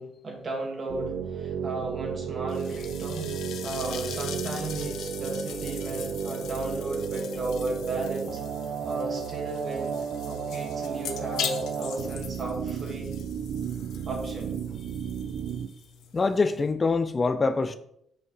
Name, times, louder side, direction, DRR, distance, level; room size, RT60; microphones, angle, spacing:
voice 1, 0.0-3.3 3.6-8.4 8.8-10.0 10.3-13.1 14.1-14.6, right 2 dB, 45° right, 1.8 m, -34 dB
sound 1, 0.9-15.7, right 7 dB, 75° right, 0.3 m, -33 dB
sound 2, 2.5-16.7, left 8 dB, 80° left, 0.6 m, -41 dB
voice 2, 16.1-17.8, left 4 dB, 30° left, 0.4 m, -24 dB
5.6 x 5.4 x 3.1 m
cardioid pair, 90°, 0 cm